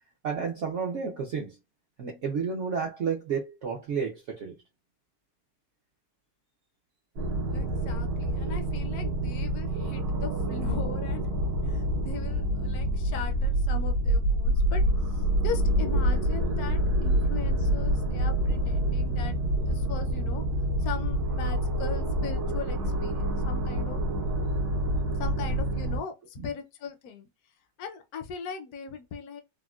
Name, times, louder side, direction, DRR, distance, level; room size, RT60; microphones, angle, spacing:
voice 1, 0.2-1.6 2.0-4.6, right 6 dB, 75° right, 0.7 m, -31 dB
sound 1, 7.2-26.0, right 1 dB, 90° right, 1.5 m, -27 dB
voice 2, 7.5-11.3 11.6-20.4 20.8-24.0 25.2-27.3 27.8-29.4, left 6 dB, 70° left, 0.9 m, -39 dB
3.6 x 2.1 x 2.2 m
omnidirectional pair, 1.9 m